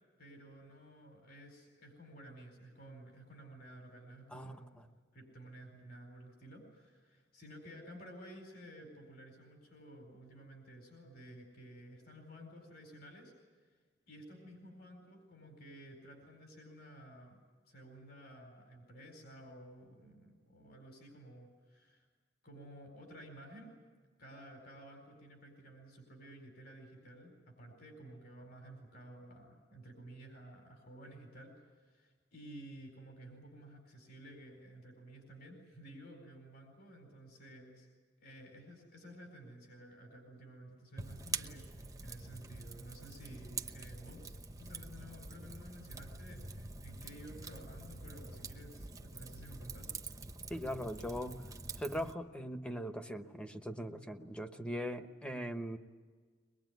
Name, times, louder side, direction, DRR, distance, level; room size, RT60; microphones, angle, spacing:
voice 1, 0.2-4.8 5.1-13.3 13.6-13.8 14.1-17.4 17.7-22.0 22.4-23.7 24.2-37.9 38.2-49.9, right 1 dB, 60° left, 3 dB, 4.5 m, -53 dB
Fire, 41.0-52.1, right 3 dB, 20° right, 1.0 m, -46 dB
voice 2, 50.5-51.4 51.8-55.8, equal, 5° left, 7 dB, 1.1 m, -40 dB
23.5 x 21.0 x 9.4 m, 1.5 s
head